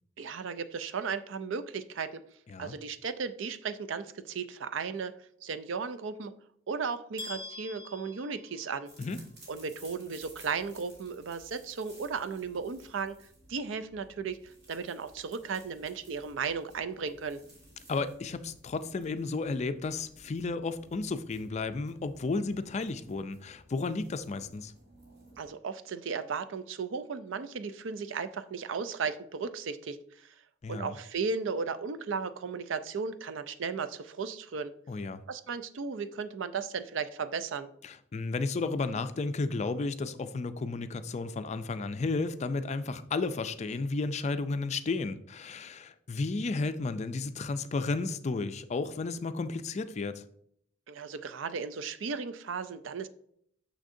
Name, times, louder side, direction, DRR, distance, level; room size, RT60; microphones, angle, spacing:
voice 1, 0.2-2.2 2.6-5.1 5.4-6.3 6.7-8.9 9.5-13.2 13.5-17.4 25.4-30.3 30.7-34.7 35.3-37.7 50.9-53.1, right 5 dB, 80° right, 13 dB, 0.5 m, -35 dB
sound 1, 7.2-9.2, left 2 dB, 20° right, 2.7 m, -44 dB
sound 2, 8.9-25.5, right 1 dB, 60° right, 2.4 m, -57 dB
voice 2, 17.9-24.7 30.6-31.0 34.9-35.2 37.8-50.2, left 3 dB, 35° left, 11 dB, 0.4 m, -33 dB
6.4 x 6.2 x 2.6 m, 0.68 s
head